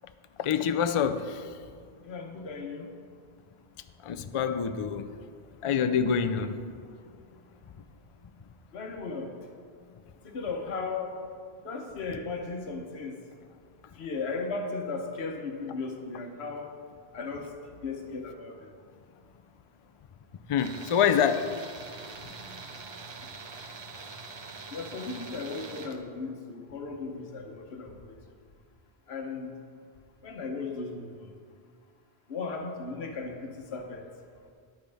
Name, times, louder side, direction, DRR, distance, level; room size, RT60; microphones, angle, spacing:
voice 1, 0.4-1.4 4.0-5.1 5.6-6.7 20.5-21.5, left 7 dB, 55° left, 10 dB, 0.3 m, -26 dB
voice 2, 2.0-2.9 8.7-9.3 10.2-11.1 11.6-13.2 14.0-16.7 17.1-17.5 17.8-18.7 24.7-28.2 29.1-29.5 30.2-31.3 32.3-34.1, left 4 dB, 80° left, 4 dB, 1.2 m, -36 dB
Tools, 20.6-26.0, right 4 dB, 35° right, 0.5 m, -43 dB
11.0 x 9.3 x 3.4 m, 2.1 s
omnidirectional pair, 1.1 m